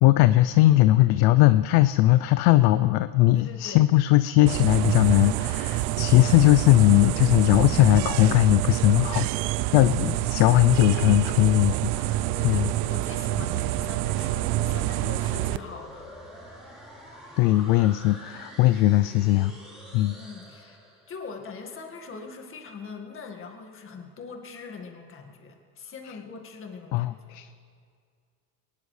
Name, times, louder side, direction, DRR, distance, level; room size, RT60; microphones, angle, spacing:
voice 1, 0.0-9.3 9.7-12.7 17.4-19.5 19.9-20.2 26.0-26.2 26.9-27.5, left 16 dB, 50° left, 13 dB, 0.5 m, -19 dB
voice 2, 3.3-3.8 6.1-6.3 8.8-9.5 12.2-16.1 20.1-20.8 21.1-27.4, left 5 dB, 25° left, 3 dB, 1.8 m, -42 dB
sound 1, 4.5-15.6, right 16 dB, 55° right, 0.5 m, -27 dB
sound 2, 13.4-21.3, equal, ahead, 3.7 m, -46 dB
22.5 x 19.5 x 3.3 m, 2.2 s
supercardioid pair, 130°, 48 cm